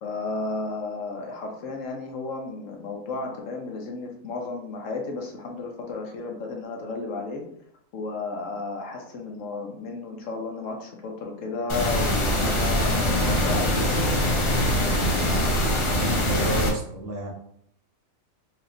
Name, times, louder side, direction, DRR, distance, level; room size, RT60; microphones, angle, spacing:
voice 1, 0.0-7.4 7.9-14.2 14.6-14.9, left 3 dB, 70° left, 1 dB, 1.1 m, -33 dB
sound 1, 11.7-16.7, equal, 45° left, 0.3 m, -23 dB
voice 2, 16.2-17.3, right 2 dB, 70° right, -2 dB, 1.3 m, -31 dB
4.2 x 2.8 x 2.5 m, 0.69 s
omnidirectional pair, 1.4 m